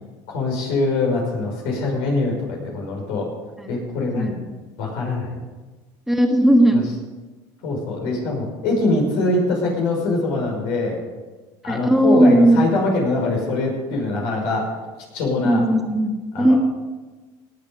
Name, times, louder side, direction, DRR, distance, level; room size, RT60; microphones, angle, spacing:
voice 1, 0.3-3.3 3.7-4.4 4.8-5.4 6.7-6.8 7.6-11.0 11.6-14.7 15.1-15.6 16.3-16.6, left 2 dB, 85° left, 0 dB, 5.7 m, -23 dB
voice 2, 6.1-6.8 11.6-12.6 15.4-16.6, right 1 dB, ahead, 3 dB, 1.5 m, -17 dB
18.5 x 9.0 x 5.4 m, 1.2 s
supercardioid pair, 110°, 10 cm